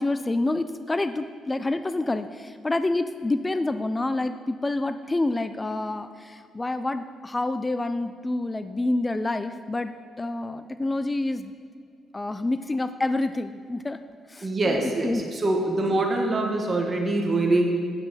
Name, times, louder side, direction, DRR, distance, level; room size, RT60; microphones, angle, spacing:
voice 1, 0.0-11.5 12.1-14.0 14.3-15.2, left 2 dB, 20° left, 11 dB, 0.3 m, -28 dB
voice 2, 14.4-17.6, right 2 dB, 30° right, 1 dB, 1.2 m, -24 dB
8.0 x 7.5 x 4.0 m, 2.1 s
cardioid pair, 90°, 0 cm